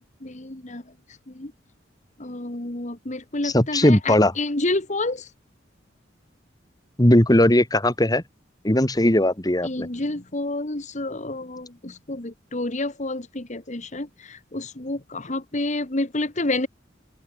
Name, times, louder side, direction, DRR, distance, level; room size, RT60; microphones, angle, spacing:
voice 1, 0.2-0.8 1.3-1.5 2.2-5.3 9.6-16.7, left 2 dB, 40° left, 1.7 m, -29 dB
voice 2, 3.4-4.3 7.0-8.2 8.6-9.9, left 1 dB, 20° left, 1.9 m, -18 dB
open air
head